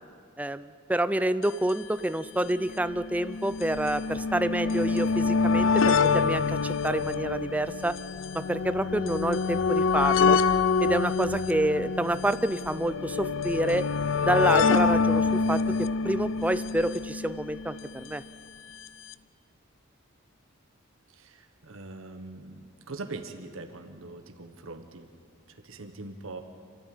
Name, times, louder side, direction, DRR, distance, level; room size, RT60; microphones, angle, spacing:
voice 1, 0.4-8.0 8.3-10.4 10.8-13.9 14.2-18.2, right 1 dB, 5° right, 13 dB, 0.4 m, -28 dB
sound 1, 1.4-1.5 1.7-1.8 2.6-17.9 18.9-19.0 19.1-19.2, left 5 dB, 70° left, 0.6 m, -26 dB
voice 2, 21.1-25.1 25.5-26.4, right 3 dB, 75° right, 5 dB, 1.3 m, -42 dB
26.5 x 13.5 x 8.8 m, 2.3 s
head